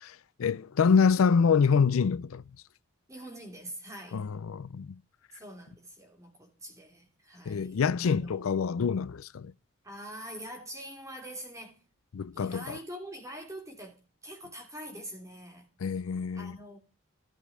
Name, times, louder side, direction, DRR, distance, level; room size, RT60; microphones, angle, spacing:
voice 1, 0.0-2.4 4.1-5.0 7.5-9.5 12.1-12.8 15.8-16.6, left 6 dB, 70° left, 0.4 m, -26 dB
voice 2, 3.1-4.2 5.3-8.4 9.8-11.8 12.3-15.7 16.3-16.8, equal, 15° right, 2.9 m, -44 dB
14.5 x 5.3 x 4.8 m
head